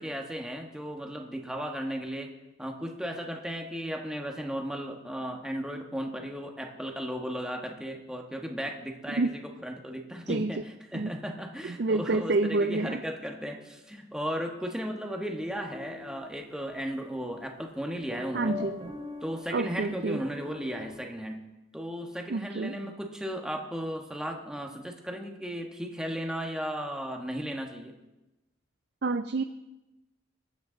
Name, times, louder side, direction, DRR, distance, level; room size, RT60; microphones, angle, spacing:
voice 1, 0.0-2.3 2.6-18.6 19.2-21.5 21.7-27.9, equal, 5° right, 2 dB, 1.4 m, -35 dB
voice 2, 11.6-13.0 18.3-18.8 19.5-20.2 22.3-22.7 29.0-29.4, right 3 dB, 55° right, 10 dB, 0.4 m, -28 dB
sound 1, 15.4-21.0, left 4 dB, 30° right, 2.5 m, -44 dB
22.0 x 9.0 x 3.9 m, 0.99 s
head